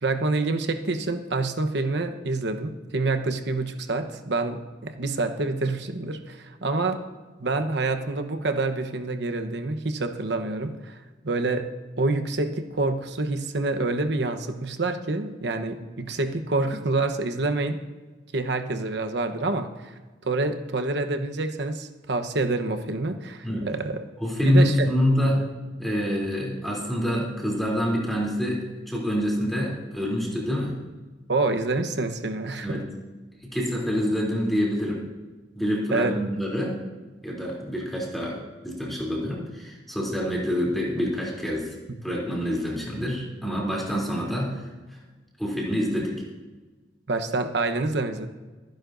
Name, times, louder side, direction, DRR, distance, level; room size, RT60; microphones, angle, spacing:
voice 1, 0.0-7.0 7.4-11.0 11.2-11.7 12.0-17.8 18.3-19.9 20.2-24.0 24.4-24.9 25.3-25.4 31.3-32.8 35.9-36.2 47.1-48.3, right 3 dB, 70° right, 7 dB, 1.0 m, -27 dB
voice 2, 24.2-25.4 25.8-30.8 32.6-32.9 33.5-35.0 35.5-36.8 37.2-41.7 42.0-45.0 45.4-46.1, equal, ahead, -4 dB, 3.1 m, -26 dB
25.0 x 10.5 x 2.6 m, 1.3 s
head